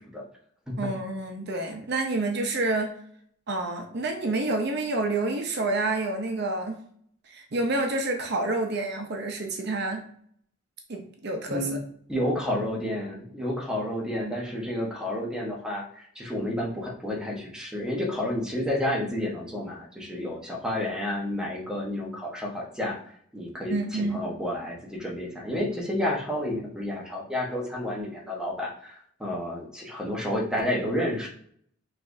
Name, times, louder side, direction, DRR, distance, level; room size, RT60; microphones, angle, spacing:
voice 1, 0.8-2.9 3.5-6.8 7.3-10.0 10.9-11.7 23.7-24.2, right 2 dB, 55° right, 3 dB, 0.7 m, -28 dB
voice 2, 12.1-23.0 23.3-31.3, left 1 dB, 5° right, -3 dB, 1.1 m, -30 dB
5.7 x 3.2 x 2.7 m, 0.62 s
head